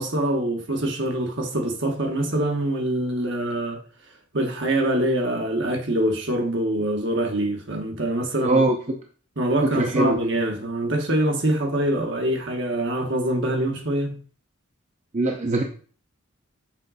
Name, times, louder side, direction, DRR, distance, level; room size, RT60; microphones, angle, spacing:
voice 1, 0.0-3.8 4.3-8.6 9.4-14.1, right 1 dB, 55° right, 1.3 m, -24 dB
voice 2, 8.4-8.8 9.6-10.2 15.1-15.6, right 2 dB, 35° right, 0.6 m, -21 dB
7.3 x 4.5 x 4.1 m
head